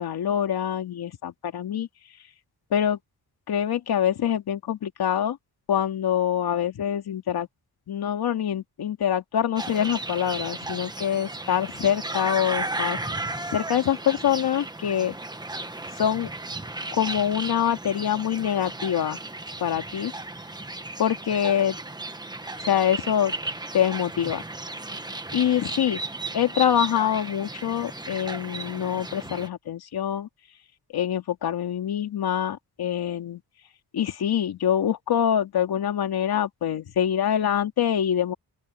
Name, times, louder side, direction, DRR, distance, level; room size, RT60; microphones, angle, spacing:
voice 1, 0.0-1.9 2.7-3.0 3.5-5.4 5.7-7.5 7.9-13.0 13.5-15.2 16.0-16.3 16.9-19.2 19.6-20.1 21.0-21.8 22.6-23.3 23.7-24.4 25.3-26.0 26.3-30.3 30.9-33.4 33.9-38.3, left 9 dB, 70° left, 2.8 m, -25 dB
sound 1, 9.6-29.5, right 2 dB, 10° right, 1.2 m, -35 dB
open air
wide cardioid pair, 160°, 38 cm